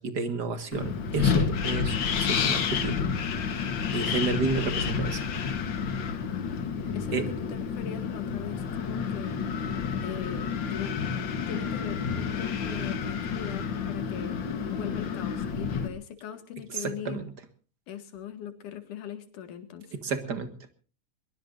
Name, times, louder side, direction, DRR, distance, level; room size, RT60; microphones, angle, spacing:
voice 1, 0.0-3.1 3.9-5.2 7.1-7.3 16.7-17.3 19.9-20.5, right 4 dB, 40° right, 10 dB, 1.7 m, -31 dB
Wind, 0.7-15.9, left 6 dB, 55° left, 1.4 m, -30 dB
voice 2, 6.9-9.8 10.0-11.0 11.5-14.4 14.7-17.2 17.9-19.9, left 9 dB, 70° left, 9 dB, 3.4 m, -40 dB
23.0 x 21.5 x 2.6 m, 0.37 s
omnidirectional pair, 3.8 m